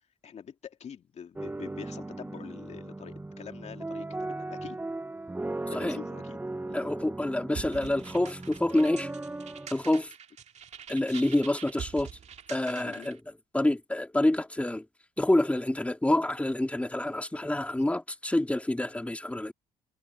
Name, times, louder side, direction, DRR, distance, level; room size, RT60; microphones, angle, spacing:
voice 1, 0.2-4.8 5.7-6.4 6.7-6.9 12.8-13.1, left 7 dB, 50° left, 2.4 m, -45 dB
sound 1, 1.4-9.7, right 2 dB, 10° right, 0.8 m, -38 dB
voice 2, 6.7-9.1 9.7-10.1 10.9-12.1 12.5-13.2 13.5-14.8 15.2-19.5, left 1 dB, 10° left, 2.9 m, -27 dB
sound 2, 7.5-13.2, right 8 dB, 55° right, 2.3 m, -44 dB
hypercardioid pair, 60°, 14 cm